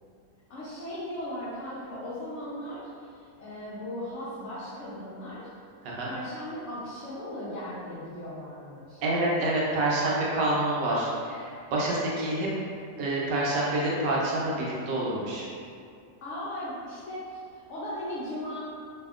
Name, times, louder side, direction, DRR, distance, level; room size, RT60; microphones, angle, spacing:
voice 1, 0.5-5.5 6.0-9.0 16.2-18.6, left 1 dB, 85° left, -10 dB, 0.6 m, -37 dB
voice 2, 9.0-12.5 13.0-15.5, right 1 dB, 85° right, -5 dB, 1.3 m, -27 dB
2.7 x 2.7 x 2.3 m, 2.4 s
omnidirectional pair, 1.9 m